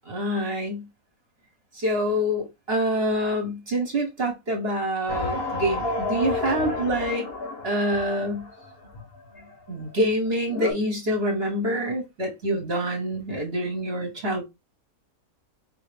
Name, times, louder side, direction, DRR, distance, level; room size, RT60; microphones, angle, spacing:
voice 1, 0.0-0.9 1.7-7.3 7.6-8.5 9.7-14.4, equal, 45° right, 1.5 m, -26 dB
sound 1, 5.1-9.5 10.0-10.1 10.2-10.7, left 3 dB, 45° left, 1.5 m, -31 dB
4.6 x 3.1 x 3.4 m
omnidirectional pair, 1.5 m